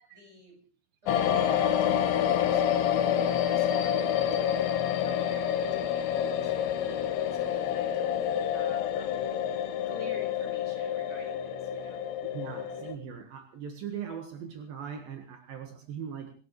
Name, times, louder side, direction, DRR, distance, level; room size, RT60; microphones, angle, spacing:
voice 1, 0.1-0.6 1.0-7.1 7.3-9.3 9.9-12.0, right 1 dB, 15° right, 2 dB, 6.0 m, -49 dB
sound 1, 1.1-12.9, left 9 dB, 75° left, 2.9 m, -28 dB
voice 2, 12.3-16.3, right 7 dB, 70° right, 4 dB, 3.3 m, -40 dB
27.0 x 14.0 x 3.2 m, 0.39 s
omnidirectional pair, 4.4 m